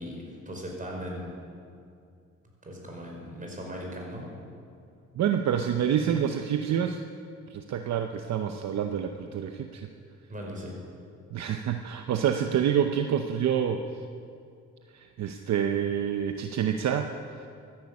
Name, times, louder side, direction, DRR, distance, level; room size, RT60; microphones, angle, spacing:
voice 1, 0.0-1.3 2.6-4.3 10.3-10.7, equal, 25° right, -1 dB, 5.3 m, -38 dB
voice 2, 5.2-7.0 7.5-9.9 11.3-13.8 14.9-17.1, right 8 dB, 65° right, 6 dB, 0.8 m, -27 dB
14.5 x 11.0 x 8.6 m, 2.4 s
cardioid pair, 90°, 30 cm